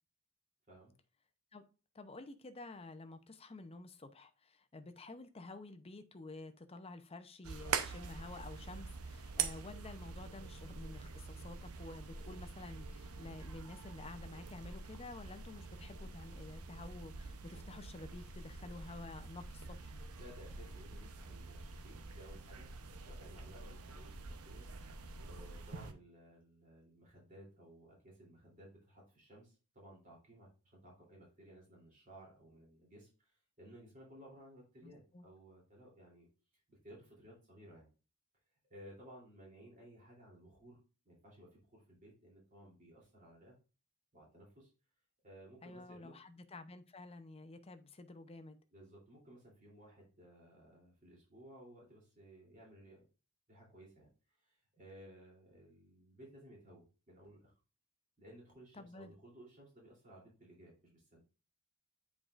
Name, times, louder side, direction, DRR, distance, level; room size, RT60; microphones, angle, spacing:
voice 1, 1.9-19.9 34.8-35.3 45.6-48.6 58.7-59.1, left 2 dB, 25° left, 0.7 m, -51 dB
sound 1, 7.4-25.9, right 5 dB, 90° right, 0.8 m, -45 dB
voice 2, 20.2-22.7 23.0-36.3 36.7-37.9 38.7-43.5 44.1-44.7 45.2-46.2 48.7-53.1 53.5-57.5 58.2-61.2, right 1 dB, 35° right, 3.2 m, -58 dB
8.5 x 4.8 x 2.5 m
head